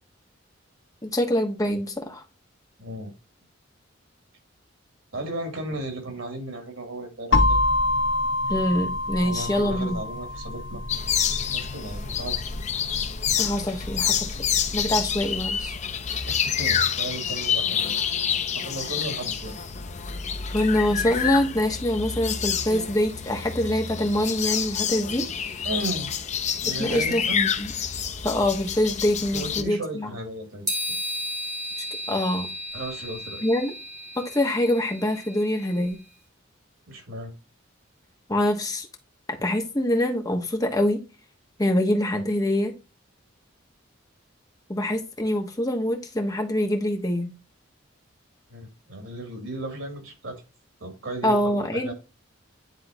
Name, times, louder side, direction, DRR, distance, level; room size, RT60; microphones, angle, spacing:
voice 1, 1.0-2.2 8.5-10.0 13.4-14.3 14.7-15.7 20.5-25.2 26.8-27.7 28.2-30.1 32.1-32.5 33.4-33.7 34.2-36.0 38.3-38.9 39.4-41.0 41.6-42.7 44.7-47.3 51.2-51.9, left 1 dB, 20° left, 1.1 m, -25 dB
voice 2, 2.8-3.1 5.1-7.6 9.2-10.8 11.2-12.4 16.3-18.0 18.5-19.6 25.6-26.1 26.6-27.4 29.3-30.8 32.7-33.4 36.9-37.3 48.5-50.4 50.8-51.9, right 2 dB, 90° right, 2.5 m, -35 dB
sound 1, 7.3-15.2, left 2 dB, 65° left, 0.9 m, -27 dB
sound 2, 10.9-29.6, left 7 dB, 35° left, 0.6 m, -28 dB
sound 3, 30.7-36.0, equal, 20° right, 2.0 m, -34 dB
10.0 x 3.7 x 2.7 m
head